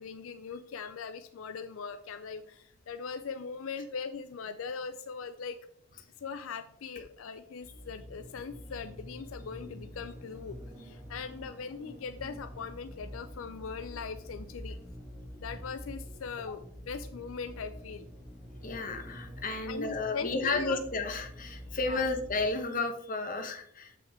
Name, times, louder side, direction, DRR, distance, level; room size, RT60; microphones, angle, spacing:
voice 1, 0.0-5.6 6.2-14.8 15.4-18.1 19.7-20.8 21.8-22.0, left 5 dB, 80° left, 10 dB, 0.4 m, -40 dB
sound 1, 7.5-22.5, equal, 5° right, 2.2 m, -46 dB
voice 2, 18.6-23.9, left 3 dB, 40° left, 5 dB, 1.0 m, -32 dB
7.0 x 5.8 x 3.6 m, 0.68 s
head